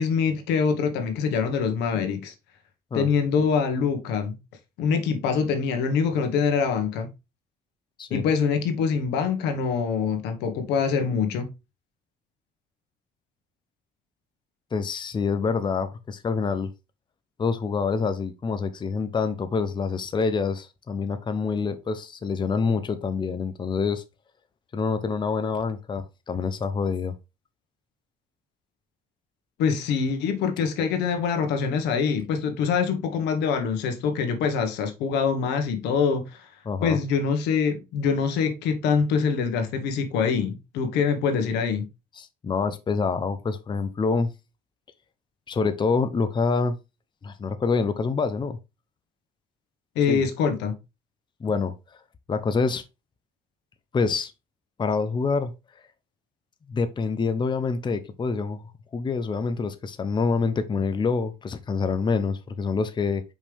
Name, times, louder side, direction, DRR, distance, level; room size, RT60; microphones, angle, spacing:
voice 1, 0.0-2.3 2.9-4.4 4.8-7.1 8.1-11.5 29.6-36.5 36.8-41.8 49.9-50.7, left 6 dB, 90° left, 1.4 m, -24 dB
voice 2, 14.7-16.7 17.4-24.0 24.7-27.1 36.7-37.0 42.2-44.3 45.5-46.8 47.2-48.6 50.1-50.2 51.4-51.7 52.3-52.8 53.9-54.3 54.8-55.5 56.7-63.2, left 4 dB, 25° left, 0.8 m, -26 dB
5.4 x 5.2 x 3.4 m
cardioid pair, 110°, 17 cm